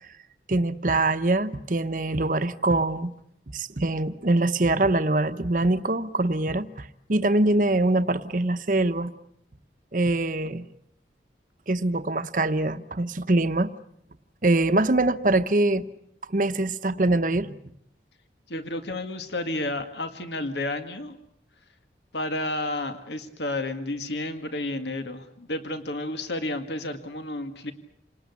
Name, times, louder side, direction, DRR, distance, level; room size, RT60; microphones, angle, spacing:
voice 1, 0.5-3.1 3.5-9.1 9.9-10.6 11.7-13.7 14.4-15.9 16.3-17.6, right 2 dB, 45° right, 0.9 m, -23 dB
voice 2, 18.5-21.2 22.1-27.7, left 2 dB, 75° left, 2.0 m, -31 dB
28.5 x 19.5 x 8.4 m
head